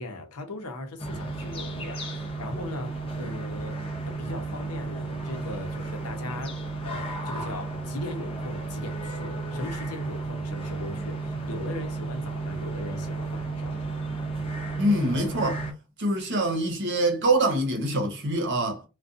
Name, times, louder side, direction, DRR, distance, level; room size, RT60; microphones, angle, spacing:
voice 1, 0.0-13.8, left 2 dB, 85° left, 0.7 m, -39 dB
sound 1, 1.0-15.7, right 3 dB, 25° left, 0.6 m, -33 dB
voice 2, 14.8-15.6 16.0-18.8, right 1 dB, 55° right, 0.8 m, -25 dB
2.5 x 2.3 x 2.5 m
head